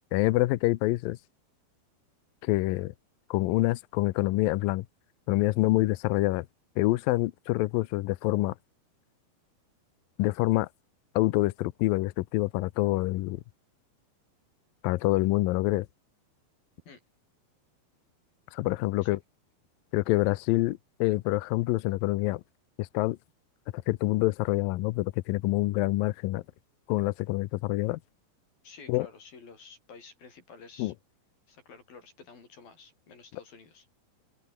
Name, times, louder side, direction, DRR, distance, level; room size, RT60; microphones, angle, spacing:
voice 1, 0.1-1.2 2.4-2.9 3.3-4.9 5.3-6.5 6.8-8.5 10.2-10.7 11.2-13.4 14.8-15.9 18.5-19.2 19.9-22.4 22.8-23.2 23.7-26.4 26.9-28.0 28.9-29.1 30.8-30.9, left 18 dB, 80° left, 2.1 m, -26 dB
voice 2, 28.6-30.9 31.5-33.9, left 5 dB, 55° left, 7.9 m, -51 dB
omnidirectional pair, 4.9 m